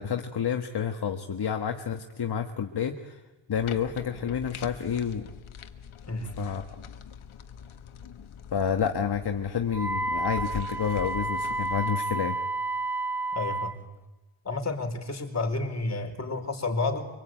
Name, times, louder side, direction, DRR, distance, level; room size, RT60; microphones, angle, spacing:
voice 1, 0.0-3.2 3.5-5.3 6.4-6.6 8.5-12.4, left 7 dB, 50° left, 5 dB, 1.7 m, -29 dB
sound 1, 3.5-11.9, left 7 dB, 70° left, 1.6 m, -43 dB
voice 2, 6.1-6.4 13.3-13.8 14.4-17.1, left 3 dB, 30° left, 4 dB, 4.6 m, -30 dB
Wind instrument woodwind instrument, 9.7-13.8, right 2 dB, 5° right, 1.0 m, -30 dB
25.0 x 24.5 x 9.1 m, 1.1 s
cardioid pair, 100°, 50 cm